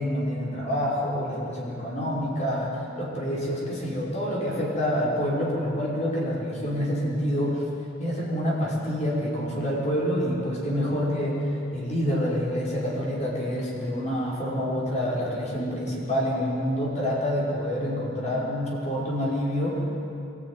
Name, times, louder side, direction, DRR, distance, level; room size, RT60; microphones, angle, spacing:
voice 1, 0.0-7.6 8.0-19.8, equal, 35° left, -5 dB, 5.6 m, -27 dB
24.5 x 14.5 x 9.6 m, 2.6 s
head